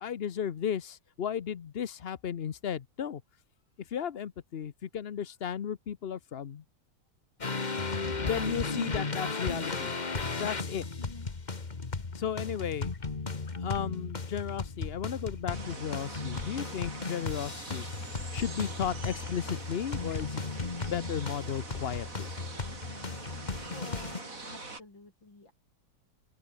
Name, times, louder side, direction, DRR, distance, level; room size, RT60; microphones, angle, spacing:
voice 1, 0.0-3.2 3.9-6.6 8.2-9.9 10.3-10.8 12.1-12.9 13.6-17.9 18.3-22.3, left 8 dB, 50° left, 0.7 m, -35 dB
sound 1, 7.4-24.2, left 4 dB, 25° left, 1.4 m, -35 dB
voice 2, 11.0-11.3 23.7-25.5, left 2 dB, 85° left, 7.8 m, -49 dB
sound 2, 15.5-24.8, right 3 dB, 45° right, 4.4 m, -44 dB
open air
omnidirectional pair, 2.0 m